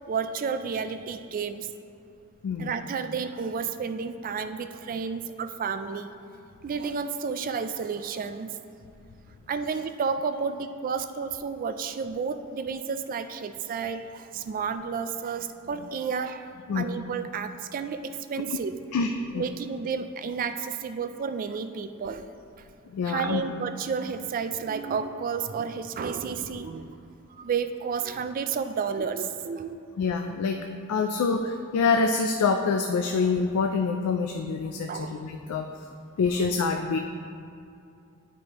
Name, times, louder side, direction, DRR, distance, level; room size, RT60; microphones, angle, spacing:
voice 1, 0.1-1.7 2.6-6.1 6.6-8.6 9.5-18.8 19.3-22.2 23.0-26.9 27.4-29.8 34.9-35.3, right 6 dB, 40° right, 9 dB, 0.3 m, -31 dB
voice 2, 18.9-19.5 22.9-23.4 30.0-30.6 30.9-35.7 36.2-37.0, left 4 dB, 90° left, 4 dB, 0.4 m, -26 dB
10.0 x 4.7 x 2.9 m, 2.6 s
head